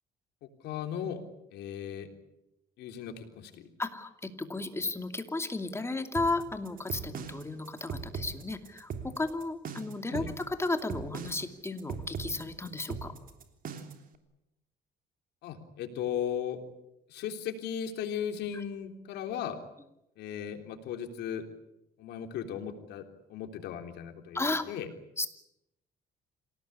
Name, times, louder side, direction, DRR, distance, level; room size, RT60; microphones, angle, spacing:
voice 1, 0.4-1.2 1.5-2.1 2.8-3.7 10.1-10.3 15.4-16.6 17.1-19.6 20.2-21.4 22.0-23.0 23.3-24.9, left 9 dB, 80° left, 5 dB, 3.6 m, -36 dB
voice 2, 3.8-13.1 24.3-24.6 25.2-25.3, left 2 dB, 15° left, 7 dB, 2.6 m, -34 dB
sound 1, 6.2-14.1, right 6 dB, 55° right, 3.2 m, -40 dB
27.5 x 18.0 x 10.0 m, 0.88 s
cardioid pair, 110°, 17 cm